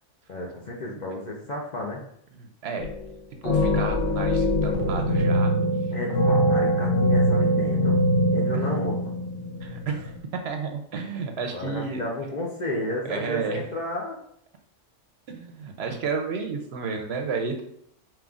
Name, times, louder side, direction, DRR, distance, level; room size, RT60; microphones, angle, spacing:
voice 1, 0.3-2.0 5.9-8.0 8.3-9.0 11.5-14.2, left 1 dB, 50° left, -2 dB, 0.5 m, -32 dB
voice 2, 2.3-2.9 3.4-5.5 8.5-8.7 9.6-12.0 13.0-13.7 15.3-17.6, right 5 dB, 65° right, 4 dB, 0.7 m, -32 dB
sound 1, 2.8-3.2 3.4-10.2, equal, 85° left, 1.0 m, -23 dB
5.1 x 3.0 x 2.4 m, 0.70 s
omnidirectional pair, 1.3 m